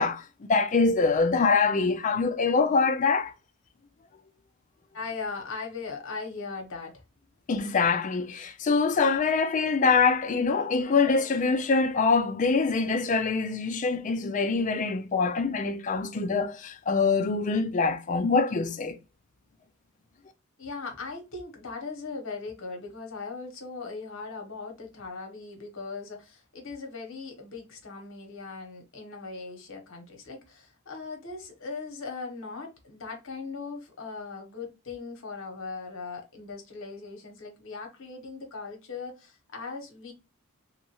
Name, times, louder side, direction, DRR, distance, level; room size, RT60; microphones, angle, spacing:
voice 1, 0.0-3.3 7.5-19.0, left 4 dB, 35° left, 0.3 m, -24 dB
voice 2, 4.9-6.9 20.6-40.1, left 4 dB, 60° left, 1.0 m, -39 dB
3.0 x 2.4 x 2.9 m
head